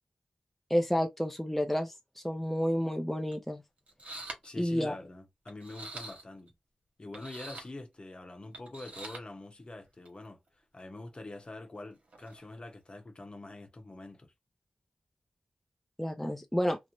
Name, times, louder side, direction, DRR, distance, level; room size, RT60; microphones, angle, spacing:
voice 1, 0.7-3.6 4.6-5.0 16.0-16.8, equal, 5° left, 0.4 m, -30 dB
sound 1, 3.3-3.4 3.9-4.5 5.5-6.5 7.1-7.7 8.5-9.2 10.0-10.3 12.1-12.6, right 2 dB, 70° right, 0.9 m, -44 dB
voice 2, 4.4-6.5 7.0-10.4 10.7-14.3, left 2 dB, 45° left, 0.8 m, -45 dB
2.5 x 2.0 x 2.9 m
cardioid pair, 45°, 2 cm